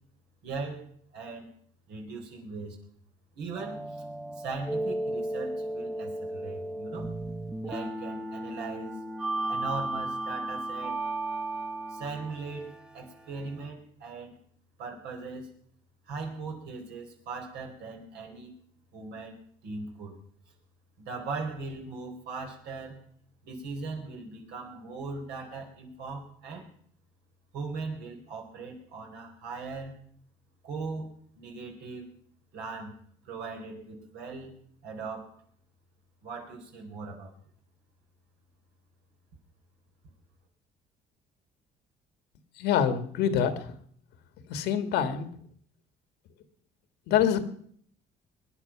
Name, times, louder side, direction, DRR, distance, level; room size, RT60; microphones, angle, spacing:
voice 1, 0.4-1.5 1.9-2.8 3.4-4.0 4.4-7.1 7.6-9.0 9.5-11.0 11.9-14.3 14.8-15.5 16.1-18.5 18.9-19.4 19.6-20.1 21.0-23.1 23.4-26.7 27.5-30.0 30.6-31.1 31.4-32.1 32.5-33.0 33.2-34.5 34.8-35.4 36.2-37.3, right 4 dB, 80° right, 1 dB, 4.1 m, -39 dB
sound 1, 3.5-13.7, right 2 dB, 5° right, 1.0 m, -35 dB
voice 2, 42.6-43.7 44.5-45.3 47.1-47.5, left 8 dB, 85° left, 10 dB, 1.7 m, -26 dB
22.5 x 10.0 x 5.9 m, 0.62 s
cardioid pair, 110°, 17 cm